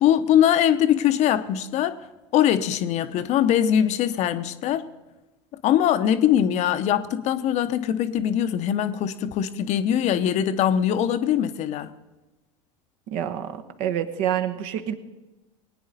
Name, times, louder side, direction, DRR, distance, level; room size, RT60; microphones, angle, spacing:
voice 1, 0.0-2.0 2.3-4.8 5.6-11.9, left 10 dB, 45° left, 11 dB, 0.8 m, -22 dB
voice 2, 13.1-13.5 13.8-14.9, right 10 dB, 55° right, 7 dB, 1.2 m, -26 dB
20.5 x 9.4 x 4.0 m, 1.1 s
figure-of-eight pair, 80°, 17 cm